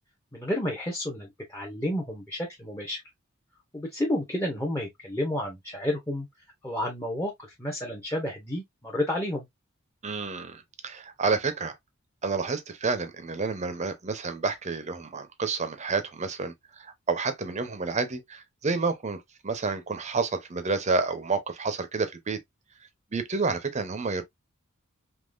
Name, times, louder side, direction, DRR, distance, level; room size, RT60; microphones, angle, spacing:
voice 1, 0.3-3.0 3.7-6.3 6.6-7.3 7.6-9.5, left 1 dB, 10° left, 0.7 m, -31 dB
voice 2, 10.0-11.8 12.2-22.4 23.1-24.2, right 4 dB, 35° right, 0.6 m, -29 dB
3.6 x 2.9 x 2.4 m
head